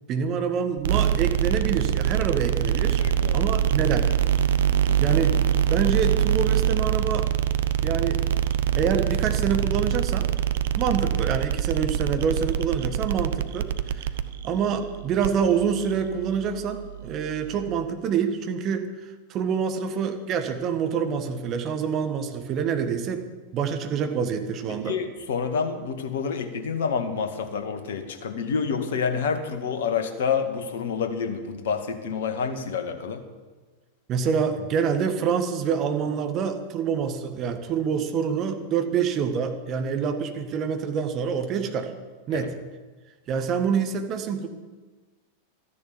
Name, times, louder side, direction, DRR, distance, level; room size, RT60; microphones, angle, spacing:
voice 1, 0.1-3.0 3.3-4.1 5.0-5.3 5.7-7.3 7.8-8.2 8.7-10.3 10.7-13.7 13.9-14.1 14.4-23.2 23.5-25.0 34.1-41.9 42.3-42.5 43.3-44.5, right 7 dB, 35° right, 6 dB, 1.6 m, -26 dB
sound 1, 0.8-17.8, right 10 dB, 60° right, 0.7 m, -25 dB
voice 2, 3.0-3.4 4.9-5.2 24.7-33.2 42.3-42.5, left 6 dB, 60° left, 7 dB, 1.7 m, -28 dB
13.5 x 10.5 x 7.0 m, 1.3 s
figure-of-eight pair, 90°, 0 cm